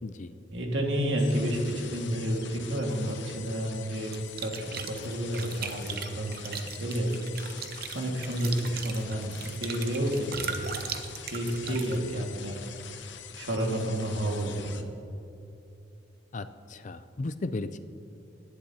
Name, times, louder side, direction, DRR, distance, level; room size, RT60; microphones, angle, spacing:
voice 1, 0.0-0.3 11.7-11.8 12.1-12.2 16.3-17.8, left 2 dB, 40° left, 12 dB, 0.4 m, -36 dB
voice 2, 0.5-7.2 7.9-10.8 11.2-12.6 12.9-13.1 13.4-14.9, right 1 dB, 75° right, 0 dB, 1.9 m, -30 dB
sound 1, 1.2-14.8, left 9 dB, 75° left, 0.8 m, -45 dB
sound 2, 4.1-12.0, right 7 dB, 55° right, 0.8 m, -39 dB
18.0 x 11.5 x 2.8 m, 2.8 s
head